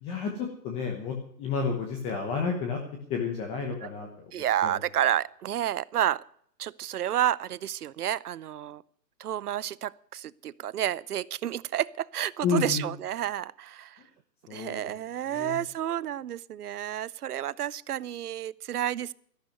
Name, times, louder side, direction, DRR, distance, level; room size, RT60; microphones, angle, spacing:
voice 1, 0.0-2.8 3.1-4.3 4.6-4.8 12.4-12.8 14.5-14.8 15.3-15.6, left 5 dB, 10° left, 3 dB, 1.0 m, -31 dB
voice 2, 4.3-6.2 6.6-8.8 9.2-14.0 14.5-19.1, right 11 dB, 65° right, 22 dB, 0.7 m, -30 dB
14.0 x 11.5 x 6.5 m, 0.64 s
hypercardioid pair, 160°, 49 cm